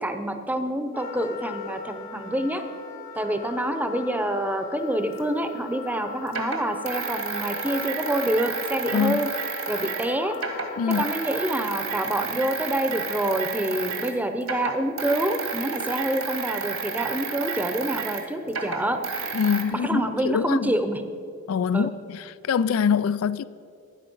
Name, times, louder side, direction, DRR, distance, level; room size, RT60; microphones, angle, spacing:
voice 1, 0.0-2.6 3.2-9.3 9.7-10.3 11.0-19.0 19.7-21.0 21.7-21.9, right 1 dB, 10° right, 0.7 m, -27 dB
Wind instrument woodwind instrument, 0.9-11.6, left 6 dB, 40° left, 1.1 m, -40 dB
sound 1, 5.2-5.3 6.3-10.1 10.3-14.1 14.4-19.6, right 5 dB, 75° right, 1.5 m, -31 dB
voice 2, 19.3-20.7 21.5-23.4, left 7 dB, 85° left, 0.4 m, -24 dB
12.5 x 9.8 x 5.4 m
head